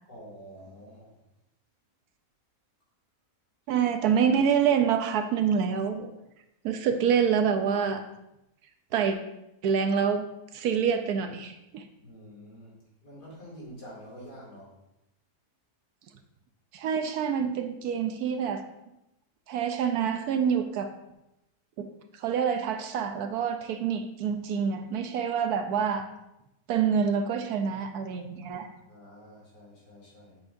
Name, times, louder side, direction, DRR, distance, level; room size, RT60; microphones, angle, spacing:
voice 1, 0.1-1.1 12.0-12.7 13.0-14.7 28.8-30.4, equal, 75° left, -5 dB, 3.1 m, -47 dB
voice 2, 3.7-6.1 6.6-8.0 8.9-9.2 9.6-10.3 10.5-11.8 16.7-18.6 19.5-20.9 21.8-21.9 22.2-26.1 26.7-28.7, right 7 dB, 70° right, 7 dB, 1.1 m, -26 dB
8.3 x 6.1 x 2.5 m, 0.89 s
omnidirectional pair, 1.8 m